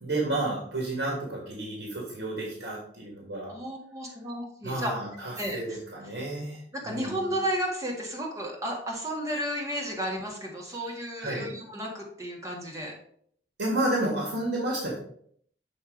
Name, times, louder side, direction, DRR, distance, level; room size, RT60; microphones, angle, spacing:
voice 1, 0.0-3.5 4.6-6.6 6.8-7.2 11.2-11.5 13.6-15.0, right 1 dB, 80° right, -2 dB, 1.8 m, -31 dB
voice 2, 3.5-4.9 5.4-5.8 6.7-12.9, equal, 20° right, -1 dB, 1.6 m, -33 dB
7.3 x 3.4 x 5.1 m, 0.63 s
head